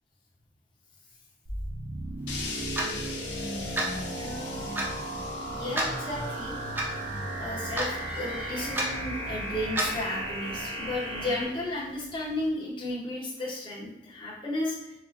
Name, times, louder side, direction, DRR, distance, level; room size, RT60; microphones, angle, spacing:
sound 1, 1.5-11.5, right 1 dB, 90° right, 0.9 m, -36 dB
sound 2, 2.3-12.5, left 2 dB, 85° left, 0.5 m, -41 dB
Clock, 2.8-2.9 3.8-4.0 4.8-4.9 5.8-5.9 6.8-6.9 7.8-8.0 8.8-8.9 9.8-10.0, right 1 dB, 10° right, 0.4 m, -28 dB
voice 1, 4.2-4.7 5.5-6.6 7.4-14.9, left 1 dB, 25° left, -5 dB, 0.8 m, -34 dB
4.1 x 2.7 x 2.4 m, 0.95 s
head